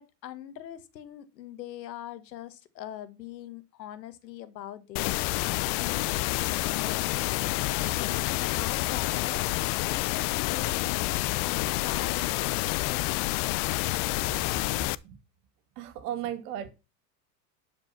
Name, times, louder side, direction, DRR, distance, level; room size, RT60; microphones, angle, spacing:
voice 1, 0.0-5.2 5.8-6.3 6.6-13.6, left 11 dB, 85° left, 1.5 m, -42 dB
sound 1, 5.0-15.0, left 21 dB, 55° left, 0.7 m, -28 dB
voice 2, 14.2-14.6 15.0-15.2 15.8-16.7, right 10 dB, 70° right, 2.6 m, -36 dB
11.5 x 5.2 x 5.9 m
hypercardioid pair, 95°, 49 cm